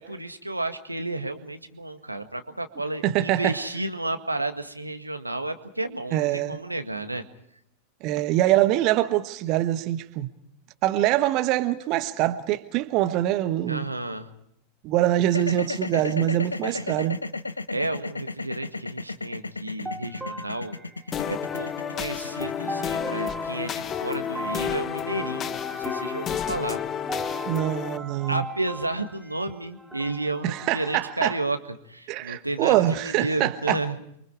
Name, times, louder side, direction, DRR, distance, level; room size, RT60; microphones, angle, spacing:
voice 1, 0.0-7.2 13.7-14.3 16.6-17.0 17.7-20.8 21.3-26.8 28.3-31.6 31.9-34.0, right 2 dB, 85° right, 1.9 m, -32 dB
voice 2, 3.0-3.6 6.1-6.6 8.0-10.3 10.8-13.9 14.8-17.2 27.5-28.4 30.4-31.4 32.1-33.8, right 14 dB, 40° right, 1.3 m, -24 dB
sound 1, 15.2-25.4, left 3 dB, 80° left, 1.1 m, -34 dB
sound 2, 19.8-31.1, right 2 dB, 10° right, 1.9 m, -40 dB
sound 3, 21.1-28.0, left 8 dB, 25° left, 1.3 m, -31 dB
29.5 x 24.5 x 4.8 m
figure-of-eight pair, 90°, 0 cm